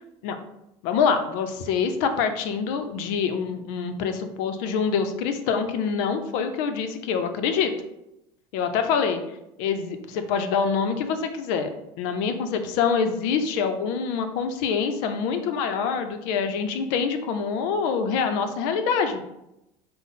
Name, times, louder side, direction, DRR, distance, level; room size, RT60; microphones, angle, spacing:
voice 1, 0.8-7.7 8.5-9.2 9.6-11.7 12.0-19.2, left 6 dB, 80° left, 8 dB, 0.5 m, -25 dB
5.6 x 2.0 x 4.0 m, 0.86 s
cardioid pair, 125°, 11 cm